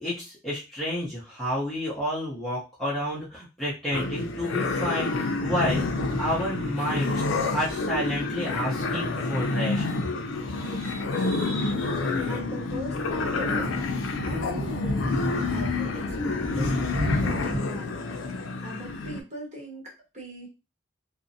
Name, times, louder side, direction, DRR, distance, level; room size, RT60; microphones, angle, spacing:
voice 1, 0.0-5.9 6.2-9.9 10.5-11.9, equal, ahead, -9 dB, 0.6 m, -31 dB
sound 1, 3.9-19.2, left 3 dB, 85° left, 0.4 m, -29 dB
sound 2, 5.3-17.6, left 1 dB, 90° right, 0.7 m, -35 dB
voice 2, 10.6-18.2 18.6-20.5, right 1 dB, 35° right, -2 dB, 0.9 m, -40 dB
2.5 x 2.0 x 2.6 m, 0.28 s
head